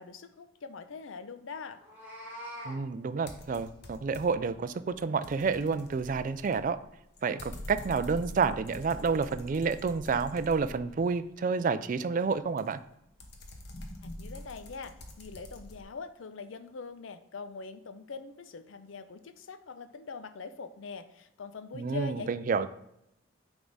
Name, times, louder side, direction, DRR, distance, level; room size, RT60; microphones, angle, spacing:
voice 1, 0.0-1.8 14.0-22.7, left 4 dB, 75° left, 11 dB, 0.5 m, -43 dB
Meow, 1.7-2.8, equal, 10° right, 1.7 m, -43 dB
voice 2, 2.7-6.8 7.2-12.8 21.7-22.7, right 5 dB, 40° right, 13 dB, 0.3 m, -29 dB
sound 1, 3.3-4.5 4.9-11.1 12.6-15.8, left 1 dB, 55° left, 0.9 m, -45 dB
9.2 x 3.5 x 4.0 m, 0.81 s
head